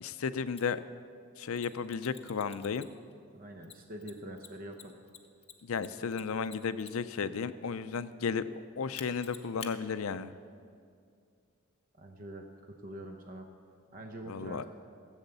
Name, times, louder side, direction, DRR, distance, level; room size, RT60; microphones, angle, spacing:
voice 1, 0.0-0.8 1.4-2.9 5.6-10.3 14.3-14.6, left 5 dB, 85° left, 13 dB, 0.5 m, -34 dB
Mechanisms, 0.6-0.7 1.6-3.1 3.6-7.2 9.0-9.7, left 8 dB, 30° left, 0.8 m, -48 dB
voice 2, 3.3-5.0 12.0-13.5 13.9-14.6, right 1 dB, 40° right, 3 dB, 0.8 m, -45 dB
14.5 x 8.1 x 6.8 m, 2.3 s
head